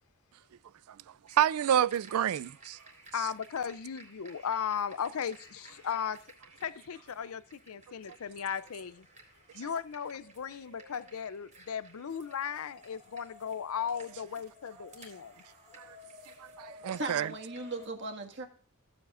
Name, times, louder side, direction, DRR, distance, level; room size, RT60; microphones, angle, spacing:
sound 1, 1.3-17.9, equal, 35° right, 3.8 m, -56 dB
voice 1, 1.4-2.8 15.8-15.9 16.4-17.3, right 9 dB, 75° right, 0.3 m, -28 dB
voice 2, 3.1-6.2 6.6-9.1 9.5-15.4, left 7 dB, 70° left, 0.5 m, -36 dB
voice 3, 16.6-18.5, right 2 dB, 55° right, 1.8 m, -38 dB
16.5 x 8.8 x 2.5 m
head